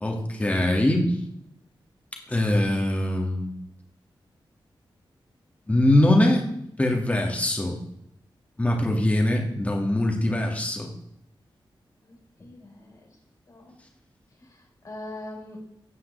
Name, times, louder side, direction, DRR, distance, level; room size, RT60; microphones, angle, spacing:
voice 1, 0.0-1.1 2.3-3.5 5.7-6.5 6.8-7.8 8.6-10.9, left 1 dB, 15° left, 1 dB, 2.0 m, -22 dB
voice 2, 12.0-13.0 13.5-13.7 14.5-15.6, left 1 dB, 40° left, 0 dB, 4.3 m, -42 dB
14.0 x 9.4 x 3.4 m, 0.75 s
wide cardioid pair, 145°, 9 cm